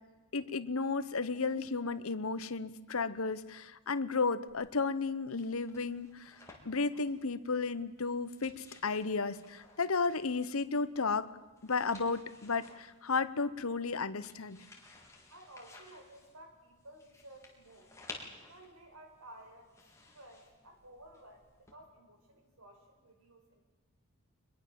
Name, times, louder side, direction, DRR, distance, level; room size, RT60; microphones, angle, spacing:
voice 1, 0.3-6.4 6.6-11.3 11.6-14.6, left 4 dB, 65° left, 13 dB, 1.1 m, -33 dB
sound 1, 4.5-21.7, left 3 dB, 15° left, 3.7 m, -56 dB
voice 2, 15.3-17.9 18.4-19.7 20.1-23.6, right 1 dB, 75° right, 4 dB, 5.0 m, -55 dB
24.0 x 21.5 x 7.6 m, 1.2 s
head